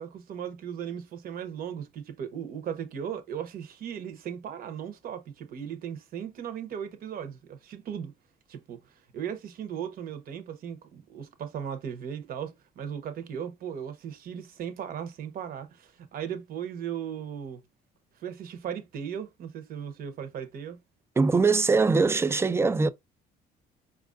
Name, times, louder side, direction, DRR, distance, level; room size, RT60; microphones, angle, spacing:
voice 1, 0.0-8.1 8.5-17.6 18.2-20.8, right 8 dB, 60° right, 0.9 m, -37 dB
voice 2, 21.2-22.9, right 4 dB, 15° right, 0.3 m, -22 dB
4.6 x 2.4 x 2.4 m
cardioid pair, 110°, 17 cm